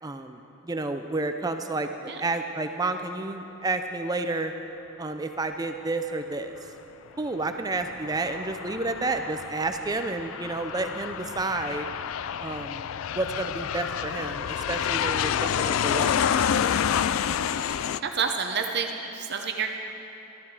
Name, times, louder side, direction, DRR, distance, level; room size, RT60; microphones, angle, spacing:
voice 1, 0.0-4.5 5.0-6.5 7.2-11.9 12.4-12.9 13.1-16.5, right 2 dB, 20° right, 7 dB, 0.5 m, -30 dB
Aircraft, 7.8-18.0, left 8 dB, 75° left, 0.3 m, -28 dB
voice 2, 17.7-19.7, right 5 dB, 55° right, 4 dB, 0.8 m, -29 dB
13.0 x 12.5 x 4.8 m, 3.0 s
head